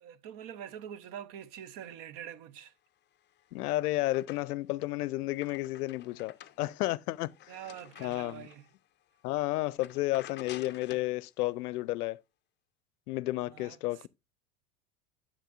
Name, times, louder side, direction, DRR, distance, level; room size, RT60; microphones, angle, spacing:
voice 1, 0.0-2.7 7.5-8.7 13.5-13.8, right 10 dB, 50° right, 0.7 m, -45 dB
sound 1, 3.2-4.8 5.1-8.8 9.2-9.4 9.7-11.1, left 11 dB, 25° left, 0.5 m, -51 dB
voice 2, 3.5-7.3 8.0-8.4 9.2-12.2 13.1-14.1, left 17 dB, 85° left, 0.5 m, -32 dB
9.1 x 7.3 x 2.5 m
hypercardioid pair, 100°, 44 cm